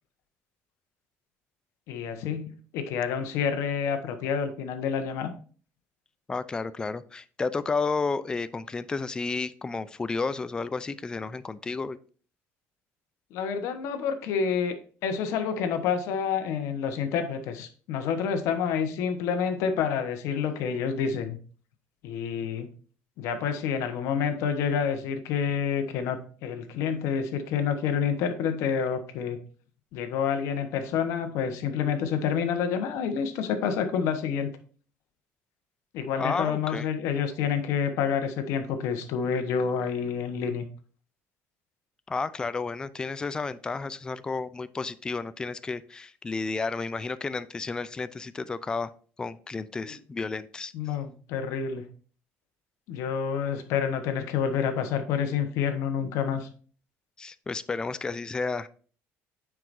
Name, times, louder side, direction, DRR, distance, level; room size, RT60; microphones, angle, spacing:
voice 1, 1.9-5.3 13.3-14.8 15.0-21.4 22.0-22.7 23.2-29.4 29.9-34.5 35.9-40.7 49.8-50.0 50.7-51.8 52.9-56.5, left 7 dB, 65° left, 7 dB, 1.1 m, -28 dB
voice 2, 6.3-12.0 36.2-36.9 42.1-48.9 49.2-50.7 57.2-58.7, left 4 dB, 15° left, 15 dB, 0.3 m, -32 dB
9.3 x 4.8 x 2.6 m, 0.41 s
cardioid pair, 160°, 5 cm